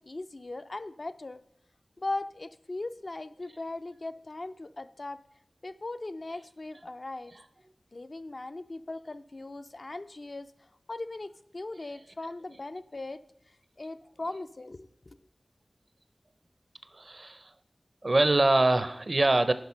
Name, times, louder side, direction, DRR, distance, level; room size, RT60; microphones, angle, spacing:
voice 1, 0.0-1.4 2.0-5.2 5.6-7.3 7.9-10.5 10.9-13.2 13.8-14.9, left 2 dB, 60° left, 10 dB, 0.4 m, -39 dB
voice 2, 16.9-17.5 18.0-19.5, right 2 dB, 55° right, 12 dB, 0.6 m, -24 dB
10.5 x 5.2 x 5.6 m, 0.71 s
wide cardioid pair, 40°, 0 cm